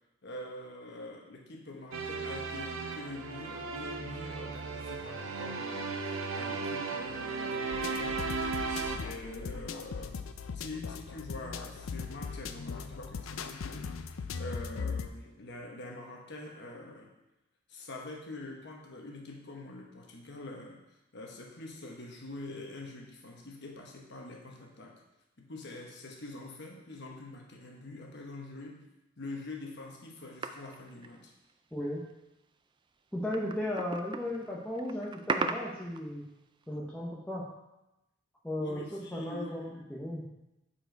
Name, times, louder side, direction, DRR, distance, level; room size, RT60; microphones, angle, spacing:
voice 1, 0.2-10.3 10.5-17.1 17.7-20.8 21.1-24.9 25.4-28.8 29.2-31.3 38.6-39.7, left 2 dB, 60° left, 0 dB, 1.1 m, -45 dB
sound 1, 1.9-9.0, right 4 dB, 85° right, 0.7 m, -36 dB
sound 2, 7.7-15.1, left 5 dB, 90° left, 0.5 m, -39 dB
sound 3, 30.4-31.7 32.1-32.2 33.1-36.2 36.6-36.7, right 4 dB, 25° right, 0.3 m, -36 dB
voice 2, 31.7-32.0 33.1-36.2 36.7-37.4 38.4-39.6 39.9-40.3, left 1 dB, 5° left, -5 dB, 0.9 m, -35 dB
7.4 x 4.6 x 4.6 m, 0.94 s
head